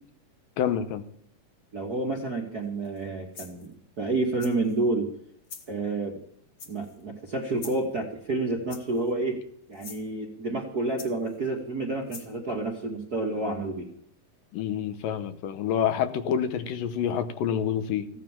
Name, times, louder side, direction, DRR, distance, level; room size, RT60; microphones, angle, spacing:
voice 1, 0.6-1.0 14.5-18.1, left 8 dB, 80° left, 2.6 m, -27 dB
voice 2, 1.7-5.1 5.7-6.2 6.7-9.4 9.7-13.8, right 2 dB, 40° right, 1.4 m, -29 dB
sound 1, 2.8-3.0 3.3-3.7 4.4-4.8 5.4-5.7 6.6-7.0 7.6-7.9 8.7-9.1 9.7-10.0 11.0-11.4 12.1-12.3, left 5 dB, 45° left, 2.1 m, -44 dB
15.0 x 9.6 x 7.3 m
omnidirectional pair, 4.0 m